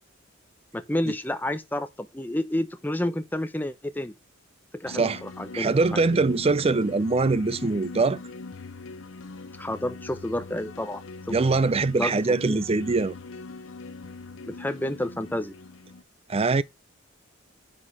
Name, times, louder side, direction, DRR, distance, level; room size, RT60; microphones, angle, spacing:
voice 1, 0.7-4.1 4.7-6.2 9.6-11.0 11.3-11.4 12.0-12.2 12.4-12.6 14.5-15.5, left 1 dB, 10° left, 0.8 m, -30 dB
sound 1, 4.8-16.0, left 3 dB, 75° left, 0.7 m, -42 dB
voice 2, 4.9-5.2 5.5-8.2 11.3-13.1 16.3-16.6, right 3 dB, 30° right, 0.5 m, -23 dB
10.0 x 4.8 x 4.8 m
head